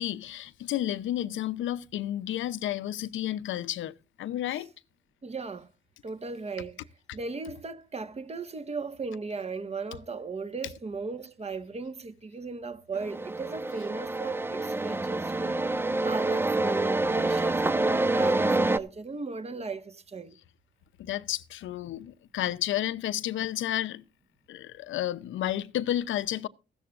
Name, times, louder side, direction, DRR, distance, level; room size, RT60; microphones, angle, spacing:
voice 1, 0.0-4.7 21.0-24.0 24.5-26.5, left 12 dB, 75° left, 0.8 m, -31 dB
voice 2, 5.2-5.7 6.0-6.8 7.1-15.6 16.0-20.3, right 4 dB, 30° right, 1.6 m, -36 dB
sound 1, 13.0-18.8, right 2 dB, 10° right, 0.6 m, -27 dB
15.5 x 13.5 x 2.6 m
cardioid pair, 90°, 20 cm